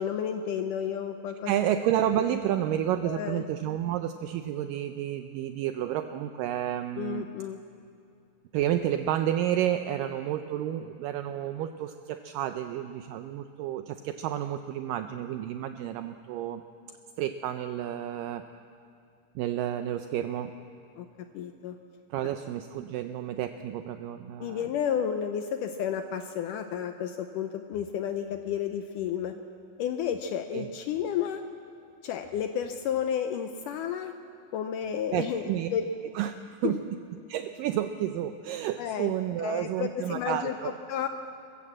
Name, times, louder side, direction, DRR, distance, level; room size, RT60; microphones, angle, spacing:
voice 1, 0.0-1.5 3.0-3.4 7.0-7.6 21.0-21.1 21.3-21.8 24.4-29.3 29.8-31.4 32.0-34.1 34.5-35.9 36.6-36.8 38.8-39.1 39.4-41.1, left 8 dB, 80° left, 7 dB, 1.9 m, -31 dB
voice 2, 1.5-7.3 8.5-16.6 17.2-18.4 19.4-20.5 22.1-24.6 30.5-30.7 35.1-35.7 36.2-36.8 37.3-40.7, right 11 dB, 80° right, 8 dB, 2.0 m, -30 dB
22.5 x 15.5 x 7.5 m, 2.5 s
omnidirectional pair, 4.4 m